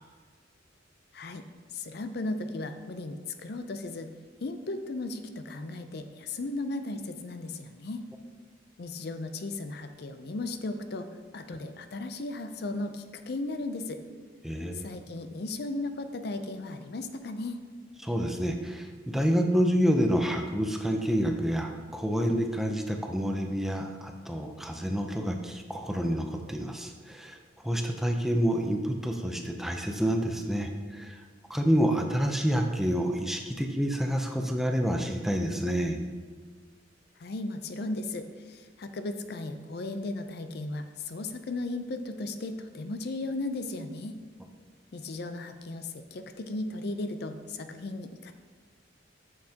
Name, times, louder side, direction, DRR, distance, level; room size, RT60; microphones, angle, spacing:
voice 1, 1.7-4.1 4.4-8.0 8.8-11.1 11.3-14.0 14.7-17.6 37.2-44.1 44.9-48.3, left 2 dB, 55° left, 9 dB, 0.5 m, -36 dB
voice 2, 14.4-14.9 18.0-27.4 27.6-31.2 31.5-36.0, equal, ahead, 3 dB, 0.5 m, -28 dB
9.6 x 6.6 x 2.9 m, 1.5 s
head